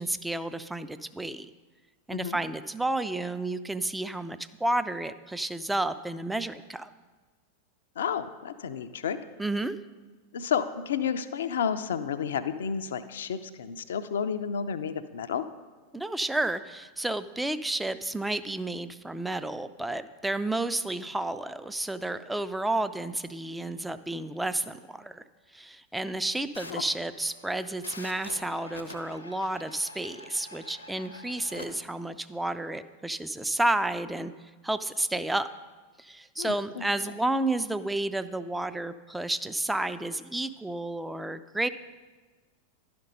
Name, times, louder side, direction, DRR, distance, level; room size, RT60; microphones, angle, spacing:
voice 1, 0.0-1.5 2.1-6.9 9.4-9.8 15.9-25.2 25.5-34.3 34.6-35.5 36.0-41.7, right 2 dB, 5° right, 12 dB, 0.3 m, -31 dB
voice 2, 8.0-9.2 10.3-15.4 26.7-26.8 36.4-36.8, left 7 dB, 60° left, 10 dB, 0.4 m, -31 dB
sound 1, 26.5-31.7, left 1 dB, 85° left, 0.8 m, -46 dB
11.0 x 5.2 x 5.5 m, 1.3 s
figure-of-eight pair, 90°, 0 cm